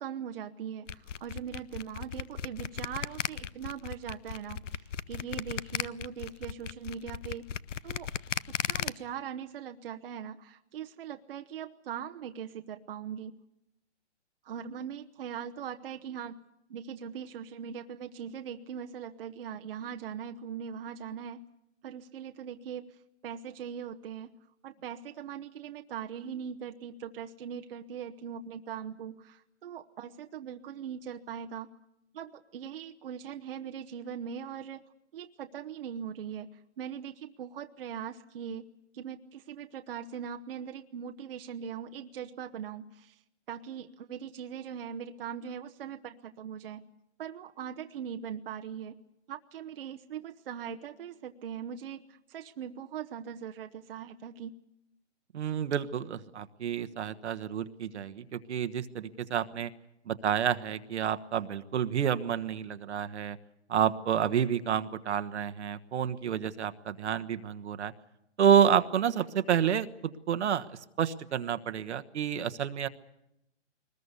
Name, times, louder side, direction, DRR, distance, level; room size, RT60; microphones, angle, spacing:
voice 1, 0.0-7.5 7.8-8.1 8.5-13.4 14.4-16.4 16.7-21.4 21.8-23.0 23.2-24.3 24.6-31.7 32.1-34.8 35.1-36.5 36.8-38.7 38.9-43.2 43.5-46.8 47.2-49.0 49.3-54.6, right 8 dB, 50° right, 6 dB, 1.0 m, -40 dB
sound 1, 0.9-8.9, left 8 dB, 80° left, 0.9 m, -35 dB
voice 2, 55.3-59.7 60.1-63.4 63.7-67.9 68.4-70.7 71.0-72.9, right 8 dB, 65° right, 10 dB, 1.3 m, -29 dB
22.5 x 20.0 x 8.2 m, 0.85 s
hypercardioid pair, 160°, 36 cm